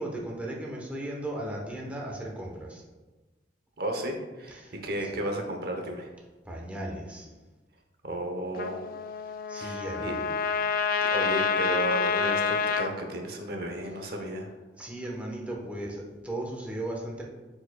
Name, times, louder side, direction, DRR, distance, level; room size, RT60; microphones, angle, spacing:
voice 1, 0.0-2.8 4.5-4.7 5.0-5.2 6.5-7.3 9.5-10.3 14.7-17.2, right 1 dB, 10° right, -2 dB, 1.0 m, -36 dB
voice 2, 3.8-6.1 8.0-8.9 9.5-10.1 11.0-14.5, right 1 dB, 60° right, 3 dB, 0.9 m, -33 dB
Trumpet, 8.5-12.9, left 5 dB, 55° left, 0.4 m, -28 dB
10.5 x 4.9 x 2.3 m, 1.2 s
head